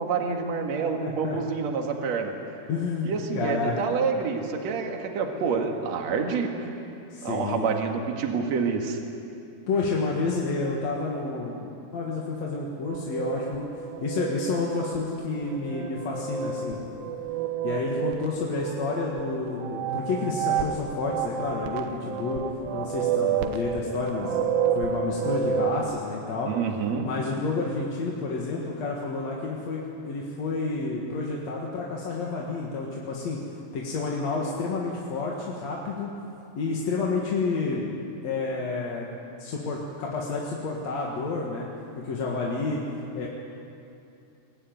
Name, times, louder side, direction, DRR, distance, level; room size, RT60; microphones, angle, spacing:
voice 1, 0.0-2.4 3.0-6.7 7.2-9.0 26.5-27.1, right 5 dB, 50° right, 3 dB, 2.5 m, -28 dB
voice 2, 1.0-1.4 2.7-3.8 7.1-7.7 9.7-13.7 14.0-16.8 17.6-22.5 22.7-24.4 24.7-26.5 27.0-33.4 33.7-36.1 36.6-37.9 38.2-39.1 39.4-41.7 41.9-42.8 43.1-43.3, left 3 dB, 50° left, -3 dB, 2.5 m, -30 dB
sound 1, 12.8-25.8, right 8 dB, 70° right, 2.5 m, -30 dB
24.0 x 17.0 x 9.4 m, 2.7 s
omnidirectional pair, 4.8 m